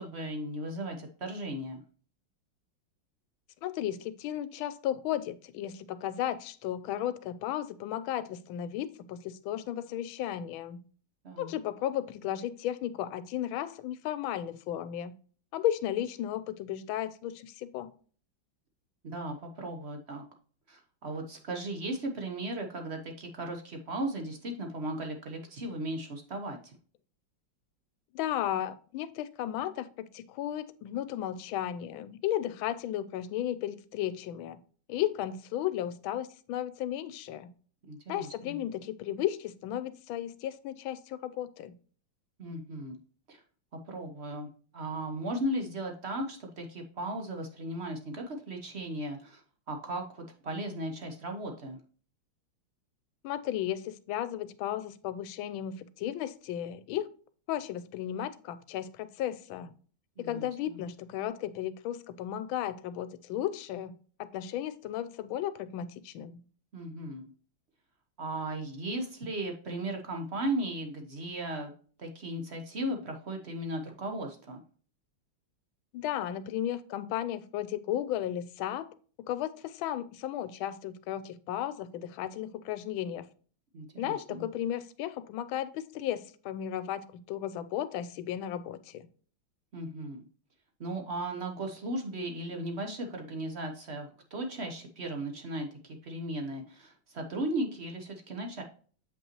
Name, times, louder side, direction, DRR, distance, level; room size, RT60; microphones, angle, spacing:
voice 1, 0.0-1.8 11.2-11.5 19.0-20.2 20.7-26.7 37.9-38.6 42.4-43.0 43.3-43.4 43.9-49.4 49.7-51.8 60.2-60.8 66.7-67.2 68.2-71.7 72.0-74.6 83.7-84.4 89.7-90.2 90.8-98.6, right 1 dB, 50° right, 0.8 m, -36 dB
voice 2, 3.6-10.8 11.4-15.1 15.5-17.9 28.1-34.6 34.9-37.5 38.1-41.7 53.2-57.1 57.5-59.7 60.2-66.4 75.9-78.9 79.3-83.2 84.0-89.1, left 11 dB, 80° left, 1.4 m, -34 dB
7.5 x 5.4 x 2.9 m
omnidirectional pair, 2.2 m